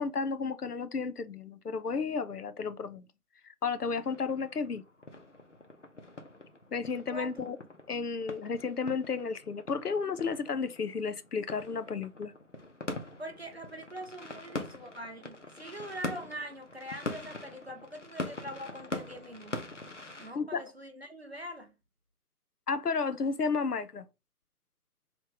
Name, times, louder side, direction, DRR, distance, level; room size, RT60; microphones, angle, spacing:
voice 1, 0.0-3.1 3.6-4.8 6.7-7.6 7.9-12.3 20.4-20.6 22.7-24.1, left 5 dB, 90° left, 0.7 m, -32 dB
sound 1, 4.0-20.3, left 2 dB, 55° left, 0.7 m, -43 dB
voice 2, 7.1-7.5 13.2-19.6 20.2-21.7, right 1 dB, 45° right, 0.7 m, -43 dB
3.5 x 3.0 x 3.7 m
figure-of-eight pair, 170°, 45 cm